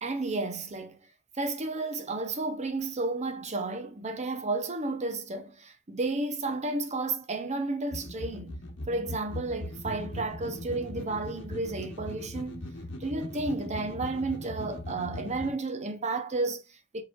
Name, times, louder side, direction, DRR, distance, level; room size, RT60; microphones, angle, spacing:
voice 1, 0.0-1.0 1.3-8.5 8.9-12.6 13.0-17.0, right 3 dB, 35° right, 0.8 m, -32 dB
sound 1, 7.9-15.5, left 1 dB, 65° left, 1.0 m, -39 dB
4.8 x 4.1 x 2.4 m
head